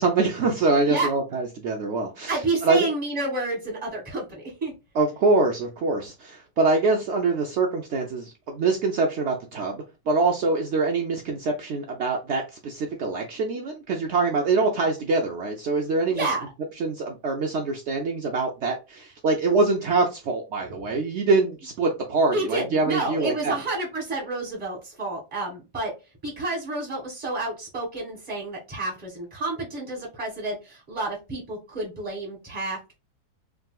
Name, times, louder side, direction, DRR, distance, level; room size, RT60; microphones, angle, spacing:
voice 1, 0.0-2.9 4.9-16.3 16.8-23.6, right 3 dB, 75° right, 1 dB, 0.6 m, -24 dB
voice 2, 2.3-4.7 16.1-16.5 22.3-25.9 26.2-32.8, right 2 dB, 20° right, -3 dB, 1.9 m, -30 dB
3.6 x 2.7 x 2.3 m, 0.27 s
omnidirectional pair, 1.7 m